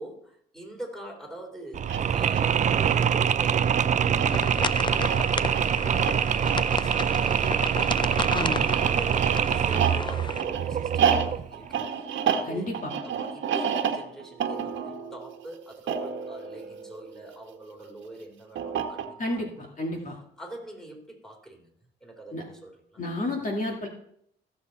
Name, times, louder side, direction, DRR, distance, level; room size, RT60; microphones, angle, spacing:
voice 1, 0.0-3.8 4.1-11.8 12.2-12.7 13.0-19.4 19.8-19.9 20.4-21.7 22.0-23.0, right 1 dB, ahead, 1 dB, 3.5 m, -44 dB
Mechanisms, 1.7-11.5, right 8 dB, 40° right, 0.4 m, -24 dB
sound 1, 1.8-17.5 18.6-19.4, right 7 dB, 70° right, 1.4 m, -31 dB
sound 2, 4.2-10.4, left 5 dB, 25° left, 0.4 m, -34 dB
voice 2, 8.3-8.7 12.5-12.9 19.2-20.1 22.3-22.4 23.0-23.9, left 1 dB, 40° left, 1 dB, 2.1 m, -31 dB
16.0 x 7.2 x 4.2 m, 0.68 s
cardioid pair, 90°, 20 cm